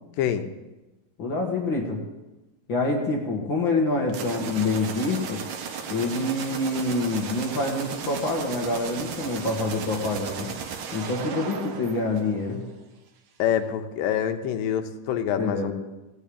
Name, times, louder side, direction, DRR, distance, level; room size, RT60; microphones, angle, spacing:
voice 1, 0.2-0.5 13.4-15.7, left 9 dB, 85° left, 7 dB, 2.5 m, -26 dB
voice 2, 1.2-2.0 2.7-5.4 5.9-10.5 10.9-12.6 15.4-15.7, left 2 dB, 50° left, 0 dB, 1.6 m, -26 dB
sound 1, 4.1-12.7, right 6 dB, 65° right, 2.2 m, -35 dB
15.5 x 6.5 x 8.6 m, 1.1 s
omnidirectional pair, 4.0 m